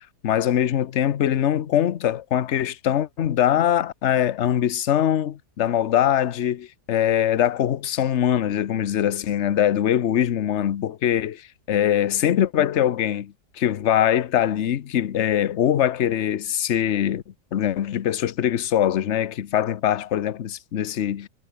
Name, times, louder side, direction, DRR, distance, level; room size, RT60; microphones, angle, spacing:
voice 1, 0.2-17.2 17.5-21.3, left 10 dB, 50° left, 1.0 m, -22 dB
omnidirectional pair, 1.8 m